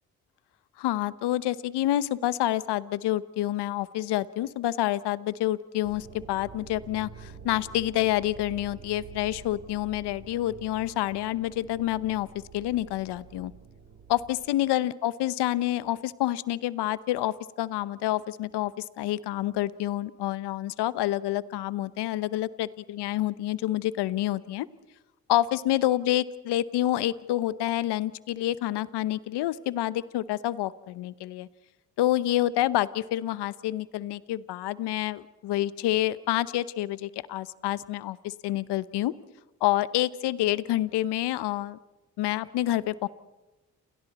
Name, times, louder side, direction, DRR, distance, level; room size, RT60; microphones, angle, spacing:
voice 1, 0.8-12.3 12.5-13.5 14.1-24.7 25.3-31.5 32.0-39.1 39.6-41.8 42.2-43.1, left 14 dB, 75° left, 17 dB, 0.9 m, -28 dB
sound 1, 5.8-14.5, right 6 dB, 50° right, 4.1 m, -47 dB
30.0 x 29.0 x 4.2 m, 1.0 s
hypercardioid pair, 45°, 40 cm